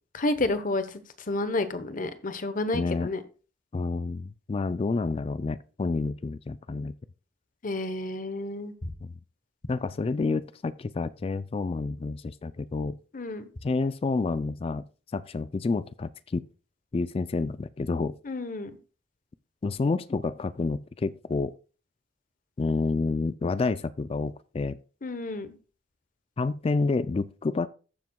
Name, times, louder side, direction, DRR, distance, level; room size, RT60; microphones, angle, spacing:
voice 1, 0.2-1.0 1.3-3.2 7.6-8.7 13.1-13.4 18.2-18.7 25.0-25.6, left 2 dB, 45° left, 0.9 m, -30 dB
voice 2, 2.7-3.1 3.7-7.0 9.0-9.1 9.7-13.0 13.6-14.9 15.1-16.5 16.9-18.2 19.6-21.5 22.6-24.8 26.4-27.7, left 3 dB, 30° left, 0.3 m, -29 dB
14.0 x 7.3 x 2.3 m
head